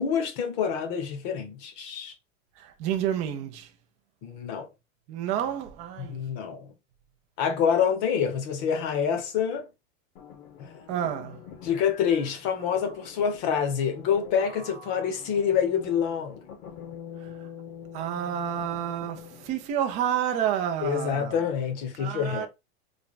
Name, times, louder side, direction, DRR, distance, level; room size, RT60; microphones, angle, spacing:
voice 1, 0.0-2.1 4.2-4.7 6.0-6.7 7.4-9.7 10.6-10.8 11.6-16.4 20.8-22.5, left 7 dB, 40° left, 0.8 m, -27 dB
voice 2, 2.6-3.7 5.1-6.2 10.9-11.4 17.2-17.5 17.9-21.5 22.0-22.5, right 9 dB, 20° right, 0.3 m, -30 dB
sound 1, 10.2-19.7, left 7 dB, 75° left, 1.3 m, -45 dB
3.4 x 2.2 x 3.9 m
supercardioid pair, 165°, 36 cm